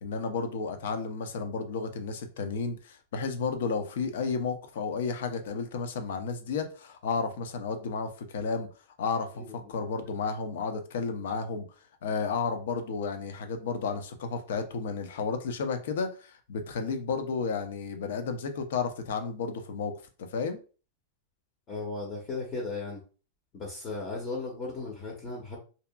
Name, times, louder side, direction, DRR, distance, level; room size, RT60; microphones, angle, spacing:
voice 1, 0.0-8.7 9.0-11.7 12.0-19.9 20.3-20.6, left 5 dB, 75° left, 7 dB, 0.5 m, -32 dB
voice 2, 9.4-9.7 21.7-23.0 23.5-25.6, left 3 dB, 25° left, -1 dB, 0.7 m, -36 dB
2.7 x 2.3 x 2.2 m, 0.36 s
supercardioid pair, 150°, 0 cm